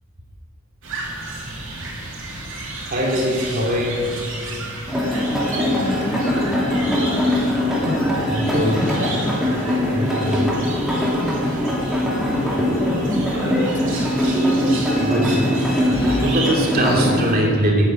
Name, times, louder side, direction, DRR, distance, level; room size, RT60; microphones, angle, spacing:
sound 1, 0.8-17.3, right 2 dB, 60° right, 3.0 m, -32 dB
voice 1, 2.9-4.2 8.3-9.1 9.9-10.5 15.0-17.9, equal, 40° right, -1 dB, 2.7 m, -22 dB
sound 2, 4.9-17.1, left 1 dB, ahead, 2.7 m, -21 dB
voice 2, 5.4-7.6 13.4-14.1, left 1 dB, 35° left, 5 dB, 0.9 m, -31 dB
11.5 x 8.8 x 9.0 m, 2.2 s
head